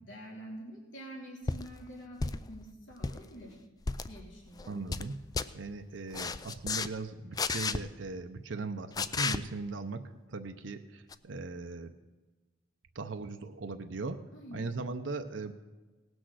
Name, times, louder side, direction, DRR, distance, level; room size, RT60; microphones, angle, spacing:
voice 1, 0.1-3.6 4.1-4.8 14.3-14.7, equal, 85° left, -2 dB, 2.7 m, -47 dB
sound 1, 1.5-1.7 2.2-2.5 2.9-3.2 3.8-4.1 4.6-5.1 5.3-5.5 6.1-6.9 7.4-7.8 8.9-9.4 11.1-11.2, left 4 dB, 20° left, 0.3 m, -32 dB
voice 2, 4.7-5.1 5.5-10.0 10.3-11.9 12.9-14.2 14.5-15.5, right 3 dB, 75° right, 7 dB, 0.7 m, -39 dB
18.0 x 6.3 x 6.2 m, 1.2 s
head